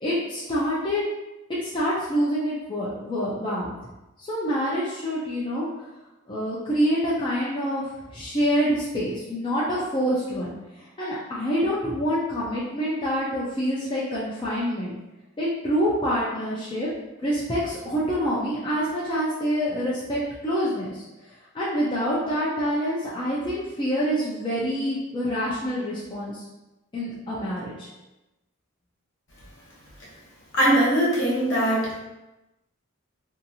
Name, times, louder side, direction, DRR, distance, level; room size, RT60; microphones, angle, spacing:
voice 1, 0.0-1.0 1.6-3.7 4.2-5.9 6.3-10.5 11.0-15.0 15.4-16.9 17.2-21.0 21.5-26.4 26.9-27.9, equal, 20° left, -8 dB, 0.4 m, -26 dB
voice 2, 30.5-32.0, right 1 dB, 60° left, -6 dB, 1.0 m, -21 dB
2.7 x 2.4 x 2.6 m, 1.0 s
head